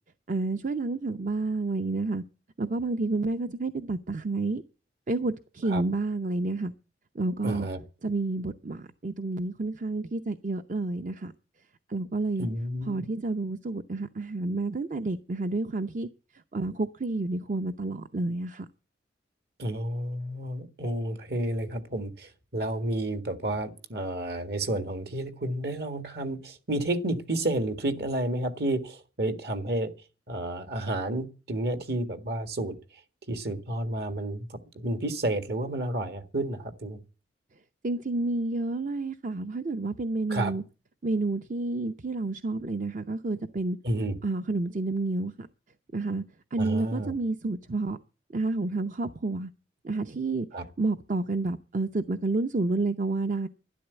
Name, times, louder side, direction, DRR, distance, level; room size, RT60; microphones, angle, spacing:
voice 1, 0.3-2.2 2.6-4.6 5.1-6.7 7.2-7.7 8.0-11.3 11.9-12.5 12.9-16.1 16.5-18.7 37.8-40.6 41.0-43.8 44.2-45.5 45.9-46.2 46.5-48.0 48.3-49.5 49.8-50.5 50.8-53.5, right 2 dB, 45° right, 0.7 m, -29 dB
voice 2, 7.4-7.8 12.4-13.1 19.6-29.9 30.3-32.8 33.3-37.0 40.3-40.5 43.8-44.2 46.6-47.1 50.5-50.7, right 1 dB, 60° right, 1.8 m, -31 dB
12.0 x 11.0 x 8.1 m
head